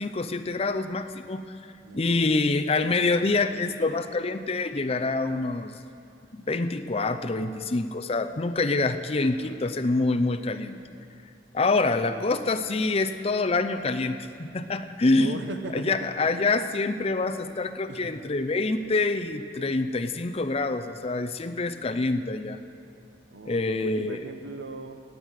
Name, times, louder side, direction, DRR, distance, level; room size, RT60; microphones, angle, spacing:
voice 1, 0.0-1.4 1.9-5.8 6.3-10.8 11.5-15.4 15.7-22.6 23.5-24.2, left 3 dB, 35° left, 8 dB, 0.6 m, -26 dB
voice 2, 1.8-2.3 9.1-9.6 12.0-12.4 15.2-16.3 17.9-18.0 23.3-25.0, right 2 dB, 85° right, 7 dB, 0.9 m, -39 dB
17.0 x 6.5 x 9.1 m, 2.5 s
head